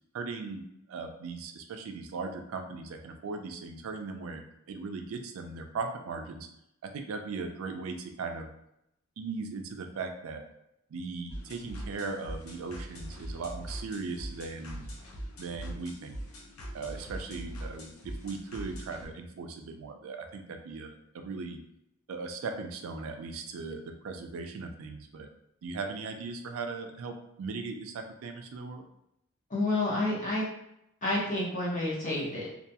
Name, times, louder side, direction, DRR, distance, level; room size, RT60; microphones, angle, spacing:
voice 1, 0.1-6.5 6.8-8.5 9.2-10.4 10.9-14.8 15.4-16.2 16.7-21.6 22.1-25.3 25.6-28.8, right 4 dB, 85° right, 5 dB, 0.4 m, -38 dB
sound 1, 11.3-19.1, right 1 dB, 85° left, 0.6 m, -42 dB
voice 2, 29.5-30.4 31.0-32.5, left 2 dB, 40° left, -6 dB, 0.9 m, -29 dB
2.3 x 2.2 x 2.7 m, 0.81 s
head